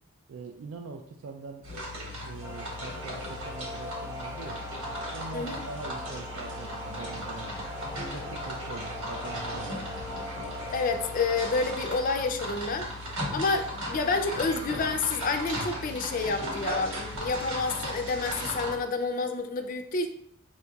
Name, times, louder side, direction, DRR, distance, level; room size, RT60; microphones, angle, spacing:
voice 1, 0.3-1.6 2.2-4.6 5.1-7.7 8.1-10.0, right 4 dB, 60° right, 4 dB, 0.3 m, -43 dB
sound 1, 1.6-18.7, equal, 80° right, 1.3 m, -37 dB
sound 2, 2.4-11.8, equal, 10° right, 0.8 m, -40 dB
voice 2, 10.7-12.9 13.3-20.1, left 4 dB, 40° left, 6 dB, 0.4 m, -29 dB
6.2 x 2.8 x 2.3 m, 0.70 s
head